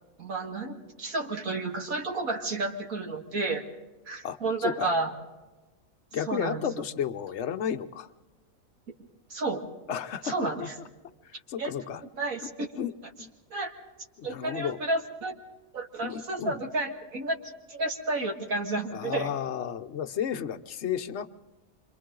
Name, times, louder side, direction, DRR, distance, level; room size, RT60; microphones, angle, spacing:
voice 1, 0.2-3.6 4.1-5.1 6.3-6.6 9.3-9.6 10.2-10.7 11.6-11.8 12.2-12.7 13.5-13.7 14.2-15.3 15.7-17.3 17.7-19.3, right 2 dB, 75° right, 2 dB, 2.3 m, -31 dB
voice 2, 4.2-4.9 6.1-8.1 9.9-10.9 11.2-12.0 12.8-12.9 13.2-13.3 14.2-14.8 16.0-16.6 18.9-21.3, left 8 dB, 60° left, 11 dB, 1.0 m, -33 dB
27.5 x 25.5 x 3.8 m, 1.2 s
omnidirectional pair, 1.5 m